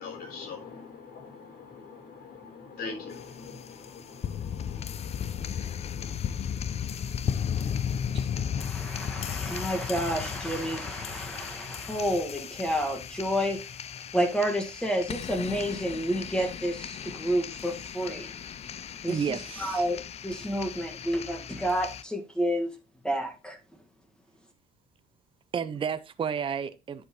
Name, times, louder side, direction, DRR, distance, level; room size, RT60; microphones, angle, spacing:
voice 1, 0.0-6.5, left 4 dB, 65° left, 3.7 m, -43 dB
sound 1, 3.1-22.0, left 8 dB, 40° left, 0.5 m, -35 dB
voice 2, 8.6-13.6 14.1-18.3 19.0-22.7 23.0-23.6, equal, 5° left, 1.8 m, -30 dB
voice 3, 19.1-19.9 25.5-27.1, right 7 dB, 30° right, 0.7 m, -32 dB
10.5 x 5.7 x 3.1 m
cardioid pair, 110°, 17 cm